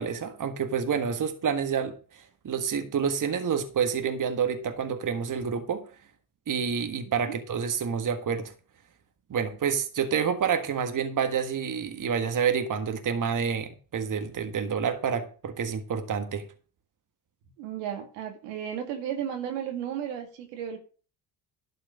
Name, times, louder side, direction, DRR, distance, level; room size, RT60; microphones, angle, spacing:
voice 1, 0.0-5.9 6.5-8.5 9.3-16.5, right 7 dB, 40° right, 1.6 m, -28 dB
voice 2, 7.0-7.4 17.6-20.8, right 9 dB, 85° right, 2.1 m, -34 dB
12.0 x 4.6 x 6.9 m
hypercardioid pair, 60°, 46 cm